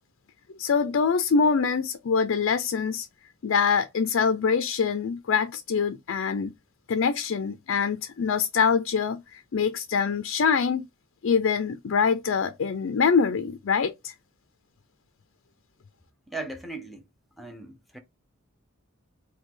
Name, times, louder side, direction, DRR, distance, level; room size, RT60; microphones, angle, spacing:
voice 1, 0.6-3.1 3.4-6.5 6.9-10.9 11.2-14.1, left 6 dB, 65° left, 0.4 m, -24 dB
voice 2, 16.3-17.0 17.4-18.0, right 2 dB, ahead, 0.8 m, -38 dB
5.2 x 2.2 x 3.7 m
head